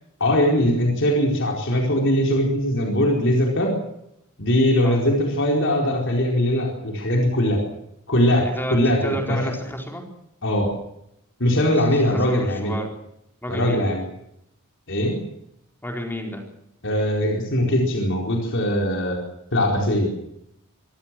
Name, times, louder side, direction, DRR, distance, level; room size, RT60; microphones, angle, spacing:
voice 1, 0.2-3.7 4.4-7.6 8.1-9.5 10.4-10.7 11.4-12.7 13.5-14.1 14.9-15.2 16.8-19.2 19.5-20.1, left 1 dB, 55° left, 0 dB, 4.5 m, -21 dB
voice 2, 8.4-10.0 11.7-13.0 13.4-13.8 15.8-16.4, equal, 10° left, 2 dB, 4.5 m, -31 dB
25.5 x 15.5 x 7.7 m, 0.79 s
head